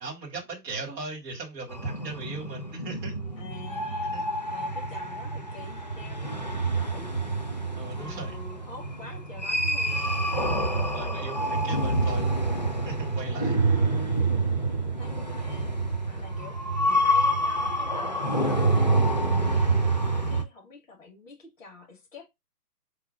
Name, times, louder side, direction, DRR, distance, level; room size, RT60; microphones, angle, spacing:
voice 1, 0.0-3.1 4.1-4.2 7.8-8.4 10.9-12.4 12.9-13.6, right 3 dB, 5° right, 0.6 m, -38 dB
sound 1, 1.7-20.4, right 2 dB, 30° left, 0.4 m, -27 dB
voice 2, 3.4-4.2 4.5-7.1 7.9-10.0 13.6-14.2 14.7-15.7 16.1-22.3, left 3 dB, 50° left, 1.9 m, -47 dB
4.7 x 2.2 x 4.8 m
figure-of-eight pair, 135°, 48 cm